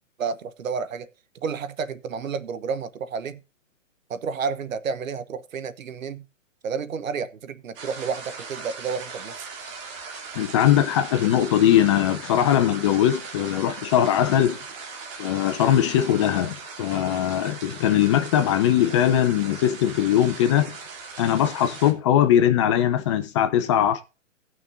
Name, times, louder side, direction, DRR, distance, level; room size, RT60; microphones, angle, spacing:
voice 1, 0.2-1.1 1.4-3.4 4.1-6.2 6.6-9.5, right 6 dB, 80° right, 1.1 m, -30 dB
sound 1, 7.8-21.9, right 4 dB, 45° right, 2.6 m, -39 dB
voice 2, 10.3-14.6 15.2-20.8 21.2-24.0, left 10 dB, 25° left, 0.6 m, -20 dB
18.0 x 6.2 x 2.6 m
hypercardioid pair, 145°, 39 cm